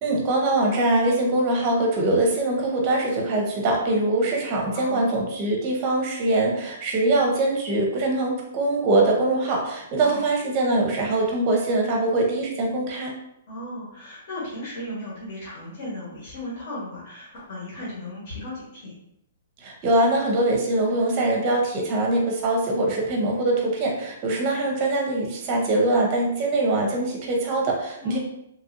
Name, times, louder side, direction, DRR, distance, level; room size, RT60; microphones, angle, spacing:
voice 1, 0.0-13.1 19.6-28.2, right 2 dB, 30° right, 0 dB, 0.7 m, -23 dB
voice 2, 4.7-5.1 10.0-10.2 13.5-18.9 24.3-24.6 28.0-28.2, left 1 dB, 45° left, -8 dB, 1.3 m, -35 dB
3.0 x 2.6 x 2.5 m, 0.78 s
hypercardioid pair, 165°, 0 cm